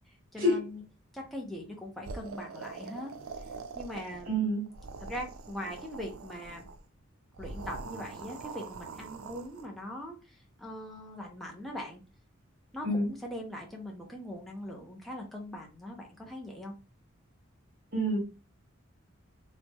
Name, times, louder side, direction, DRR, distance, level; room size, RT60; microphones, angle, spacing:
voice 1, 0.3-0.8 1.1-3.1 3.7-4.5 5.0-6.6 7.4-12.0 12.7-16.7, left 1 dB, ahead, 0.7 m, -41 dB
sound 1, 2.0-4.3 4.7-6.8 7.3-9.6, right 4 dB, 90° right, 0.5 m, -43 dB
voice 2, 4.3-4.7 12.8-13.1 17.9-18.2, equal, 45° right, 1.4 m, -27 dB
3.1 x 2.6 x 3.5 m
head